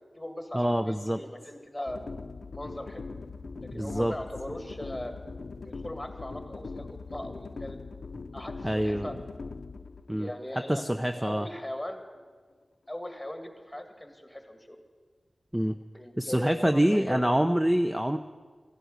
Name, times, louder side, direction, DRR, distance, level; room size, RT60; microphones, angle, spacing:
voice 1, 0.0-2.0 2.5-3.1 3.6-5.1 5.6-7.8 8.3-9.2 10.2-10.8 11.1-12.0 12.9-14.8 16.0-17.5, left 1 dB, 10° left, 5 dB, 2.1 m, -39 dB
voice 2, 0.5-1.2 3.7-4.1 8.6-9.1 10.1-10.3 10.7-11.5 15.5-15.8 16.2-18.2, equal, 10° right, 7 dB, 0.6 m, -26 dB
sound 1, 1.9-11.9, left 4 dB, 75° left, 0.6 m, -41 dB
14.5 x 11.5 x 8.0 m, 1.5 s
wide cardioid pair, 55°, 0 cm